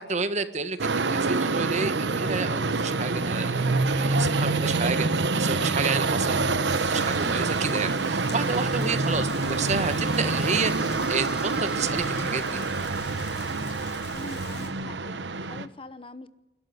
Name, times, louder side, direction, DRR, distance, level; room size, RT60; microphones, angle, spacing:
voice 1, 0.1-12.6, right 4 dB, 40° right, 10 dB, 1.5 m, -30 dB
sound 1, 0.8-15.7, right 3 dB, 85° right, 1.0 m, -26 dB
Rain, 6.7-14.7, left 4 dB, 75° left, 6.3 m, -45 dB
sound 2, 8.6-13.5, right 1 dB, 5° right, 4.9 m, -41 dB
voice 2, 14.1-16.3, left 2 dB, 30° left, 14 dB, 0.9 m, -43 dB
28.0 x 12.5 x 9.5 m, 1.0 s
head